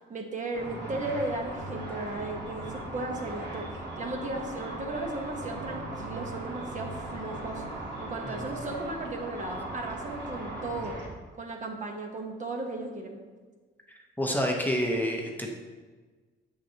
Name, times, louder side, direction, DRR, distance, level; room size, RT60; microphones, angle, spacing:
voice 1, 0.1-7.6 8.0-11.0 11.4-13.2, right 2 dB, 40° right, 1 dB, 1.2 m, -35 dB
Car / Traffic noise roadway noise / Engine, 0.5-11.1, right 2 dB, 65° right, 2.1 m, -38 dB
voice 2, 13.9-15.5, equal, 10° left, 0 dB, 0.9 m, -29 dB
7.4 x 6.3 x 2.9 m, 1.4 s
cardioid pair, 90°, 20 cm